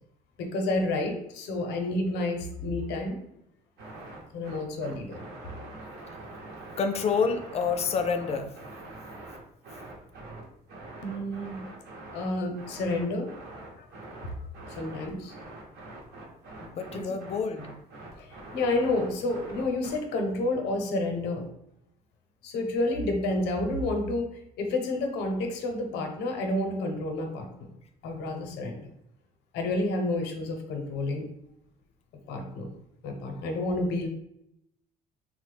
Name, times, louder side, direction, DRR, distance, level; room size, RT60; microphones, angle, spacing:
voice 1, 0.4-3.2 4.3-5.2 11.0-11.6 12.1-13.3 13.8-13.9 14.8-15.3 16.9-17.1 18.2-21.5 22.4-24.3 24.6-27.7 28.0-28.8 29.5-31.3 32.3-32.7 33.0-34.1, left 2 dB, 85° left, 4 dB, 0.6 m, -30 dB
sound 1, 3.8-20.0, right 2 dB, 75° right, 0.9 m, -44 dB
voice 2, 6.8-8.5 16.6-17.7, left 5 dB, 40° left, 7 dB, 0.4 m, -28 dB
3.0 x 2.1 x 3.3 m, 0.78 s
cardioid pair, 110°, 17 cm